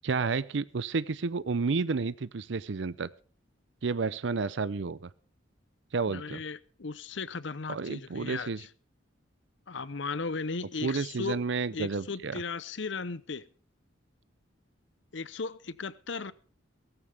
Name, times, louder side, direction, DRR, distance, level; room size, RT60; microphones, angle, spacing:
voice 1, 0.0-3.1 3.8-5.1 5.9-6.4 7.7-8.6 10.8-12.4, right 4 dB, 70° right, 0.6 m, -31 dB
voice 2, 6.1-8.7 9.7-11.4 11.7-13.5 15.1-16.3, left 4 dB, 70° left, 0.8 m, -36 dB
17.5 x 15.0 x 3.4 m
head